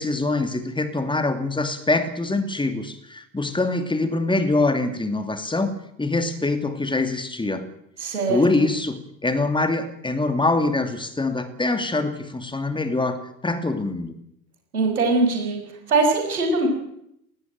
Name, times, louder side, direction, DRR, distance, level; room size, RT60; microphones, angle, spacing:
voice 1, 0.0-7.7 8.3-14.2, left 2 dB, 10° left, 9 dB, 2.7 m, -24 dB
voice 2, 8.0-8.6 14.7-15.6 15.9-16.7, right 3 dB, 80° right, 3 dB, 6.4 m, -21 dB
20.0 x 17.5 x 9.1 m, 0.76 s
figure-of-eight pair, 65°, 44 cm